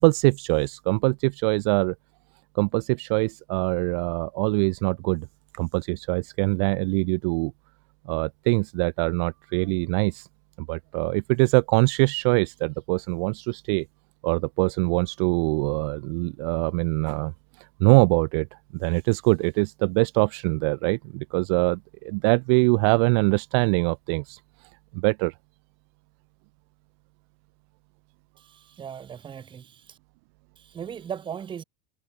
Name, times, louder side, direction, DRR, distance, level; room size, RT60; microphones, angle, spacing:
voice 1, 0.0-1.9 2.6-5.3 5.5-7.5 8.1-10.3 10.6-13.8 14.2-17.3 17.6-18.5 18.8-24.4 24.9-25.3, right 34 dB, 55° right, 0.4 m, -23 dB
voice 2, 28.4-30.0 30.6-31.6, right 8 dB, 30° right, 2.4 m, -38 dB
hypercardioid pair, 85°, 17 cm